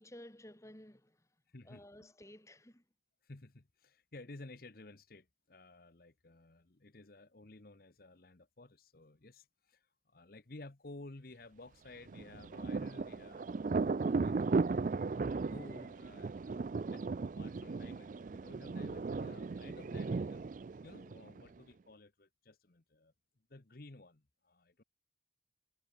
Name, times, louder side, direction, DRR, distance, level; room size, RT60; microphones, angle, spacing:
voice 1, 0.0-1.3 1.7-2.8, left 1 dB, 15° left, 2.0 m, -54 dB
voice 2, 1.5-2.1 3.2-14.9 15.5-20.4 20.8-23.1 23.5-24.8, left 2 dB, 50° left, 1.1 m, -54 dB
Thunder, 12.1-21.6, right 4 dB, 45° right, 0.4 m, -36 dB
head